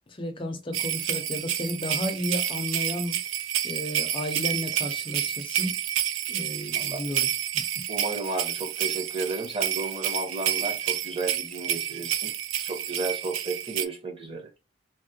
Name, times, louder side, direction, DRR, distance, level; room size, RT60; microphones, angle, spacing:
voice 1, 0.1-3.2 3.6-5.8 6.3-7.3 7.5-7.8, left 1 dB, 25° left, 0.5 m, -33 dB
sound 1, 0.7-13.9, right 11 dB, 65° right, 0.3 m, -29 dB
voice 2, 6.7-7.0 7.9-12.3 12.6-14.5, right 3 dB, 25° right, 0.9 m, -33 dB
3.5 x 2.1 x 2.7 m
head